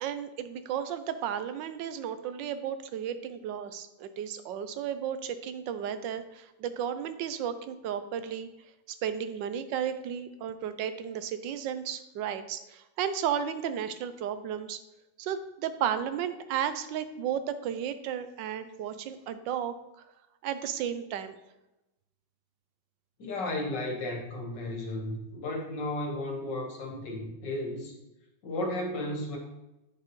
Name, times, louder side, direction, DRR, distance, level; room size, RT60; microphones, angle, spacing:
voice 1, 0.0-8.5 9.0-14.8 15.2-19.7 20.4-21.3, right 9 dB, 90° right, 11 dB, 1.3 m, -33 dB
voice 2, 23.2-27.9 28.4-29.4, left 1 dB, 75° left, 0 dB, 2.1 m, -34 dB
8.4 x 6.8 x 3.1 m, 0.95 s
omnidirectional pair, 1.9 m